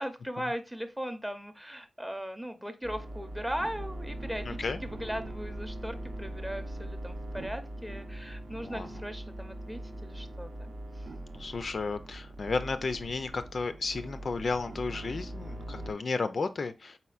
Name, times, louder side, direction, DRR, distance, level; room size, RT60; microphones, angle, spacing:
voice 1, 0.0-11.1, equal, 5° right, 0.6 m, -38 dB
sound 1, 2.8-15.9, right 1 dB, 70° right, 0.7 m, -41 dB
voice 2, 4.4-4.8 8.6-8.9 11.3-17.0, left 4 dB, 55° left, 0.3 m, -33 dB
4.2 x 4.1 x 2.3 m
wide cardioid pair, 85°, 0 cm